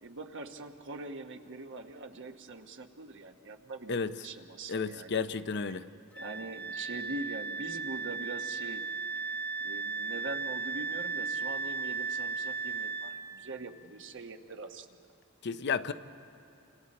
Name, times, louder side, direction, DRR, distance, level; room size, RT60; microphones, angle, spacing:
voice 1, 0.0-5.2 6.2-8.9 9.2-9.4 9.6-14.9, right 2 dB, 60° right, 1.2 m, -43 dB
voice 2, 4.7-5.9 15.4-15.9, left 5 dB, 50° left, 0.6 m, -32 dB
Wind instrument woodwind instrument, 6.1-13.2, right 5 dB, 5° left, 1.2 m, -36 dB
29.5 x 27.0 x 4.2 m
head